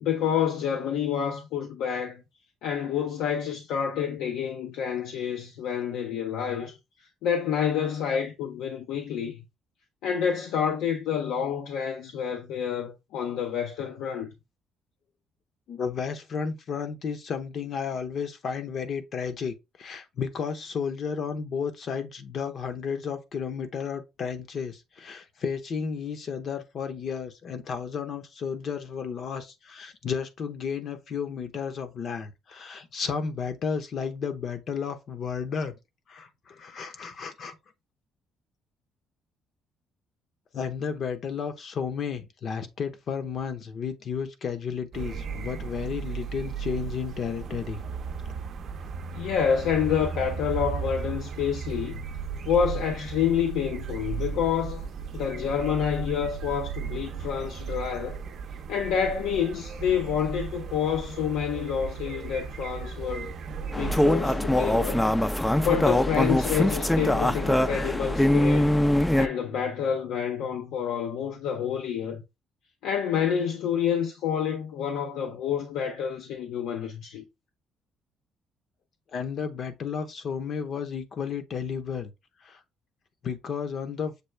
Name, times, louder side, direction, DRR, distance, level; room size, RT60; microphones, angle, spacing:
voice 1, 0.0-2.2 2.6-6.7 7.2-9.4 10.0-14.3 49.1-52.0 52.5-54.9 55.1-58.2 58.7-63.3 63.7-65.0 65.6-68.7 69.2-72.2 72.8-77.2, left 8 dB, 90° left, 0.7 m, -28 dB
voice 2, 15.7-35.7 36.1-37.6 40.5-47.8 79.1-82.1 82.4-82.6 83.2-84.1, left 6 dB, 55° left, 0.8 m, -33 dB
sound 1, 44.9-64.1, right 6 dB, 60° right, 0.6 m, -35 dB
sound 2, 63.7-69.3, left 1 dB, 10° left, 0.4 m, -23 dB
6.8 x 2.3 x 3.2 m
cardioid pair, 105°, 0 cm